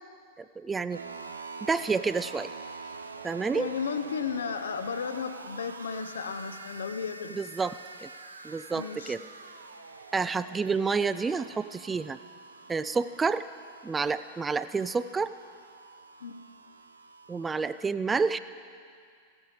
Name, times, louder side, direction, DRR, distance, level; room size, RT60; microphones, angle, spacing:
voice 1, 0.4-1.0 1.7-2.5 3.2-3.7 7.4-8.1 8.4-9.2 10.1-12.2 12.7-13.5 13.8-15.3 17.3-18.4, right 4 dB, 15° right, 14 dB, 0.3 m, -29 dB
sound 1, 0.9-17.8, right 4 dB, 80° right, 0.6 m, -46 dB
voice 2, 3.5-7.4 8.7-9.1 16.2-16.3, left 6 dB, 65° left, 10 dB, 0.7 m, -34 dB
15.5 x 10.5 x 4.9 m, 2.2 s
figure-of-eight pair, 90°, 0 cm